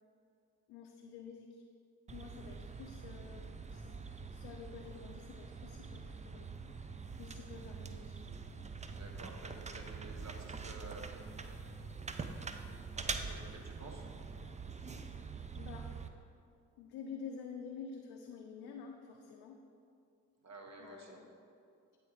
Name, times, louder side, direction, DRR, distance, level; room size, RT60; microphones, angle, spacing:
voice 1, 0.7-1.6 2.1-4.0 4.3-6.5 7.1-8.2 13.1-13.3 15.6-15.9 16.8-19.6 20.8-21.3, left 6 dB, 75° left, 2 dB, 0.6 m, -49 dB
sound 1, 2.1-16.1, right 4 dB, 20° right, 0.4 m, -45 dB
voice 2, 8.9-11.1 13.0-14.0 20.4-21.2, right 2 dB, 45° right, 2 dB, 1.2 m, -51 dB
8.7 x 3.4 x 4.9 m, 2.5 s
hypercardioid pair, 45°, 39 cm